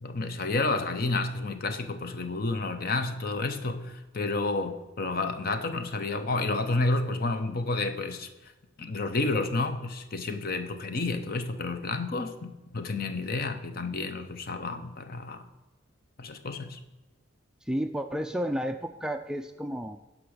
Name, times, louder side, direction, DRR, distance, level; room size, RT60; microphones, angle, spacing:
voice 1, 0.0-8.3 8.8-15.5 16.2-16.8, left 3 dB, 50° left, 8 dB, 0.7 m, -30 dB
voice 2, 17.6-20.0, equal, 5° right, 6 dB, 0.3 m, -31 dB
10.5 x 6.0 x 5.0 m, 1.1 s
head